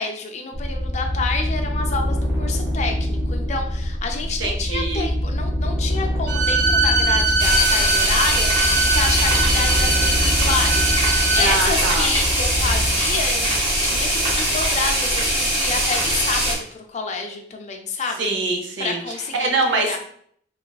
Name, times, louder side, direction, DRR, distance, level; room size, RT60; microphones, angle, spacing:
voice 1, 0.0-13.5 13.8-18.3 18.8-20.0, left 4 dB, 40° left, 4 dB, 0.3 m, -28 dB
sound 1, 0.5-14.8, equal, 15° right, 0.9 m, -25 dB
voice 2, 4.4-5.1 11.3-12.1 18.2-19.0 19.3-20.0, right 3 dB, 80° right, 3 dB, 0.6 m, -23 dB
Bowed string instrument, 6.3-11.5, right 2 dB, 65° right, 1.5 m, -22 dB
sound 2, 7.4-16.5, right 1 dB, 30° right, 1.0 m, -22 dB
3.3 x 2.3 x 2.3 m, 0.63 s
head